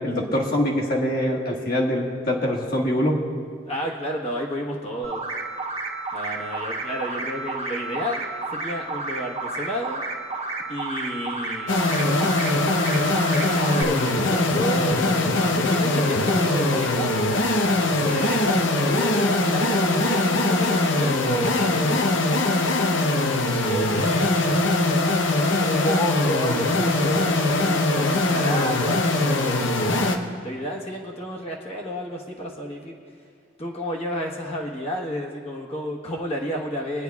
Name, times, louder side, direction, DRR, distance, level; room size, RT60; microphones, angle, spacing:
voice 1, 0.0-3.2, left 1 dB, 50° left, -2 dB, 1.5 m, -24 dB
voice 2, 3.7-5.2 6.1-10.0 10.7-12.0 13.4-17.1 17.8-22.3 23.6-25.2 25.6-29.7 30.4-33.0 33.6-37.0, equal, 35° left, -3 dB, 1.1 m, -31 dB
sound 1, 5.0-13.8, right 3 dB, 35° right, 1.2 m, -31 dB
sound 2, 11.7-30.2, left 2 dB, 75° left, 0.8 m, -22 dB
21.0 x 9.9 x 2.3 m, 2.1 s
head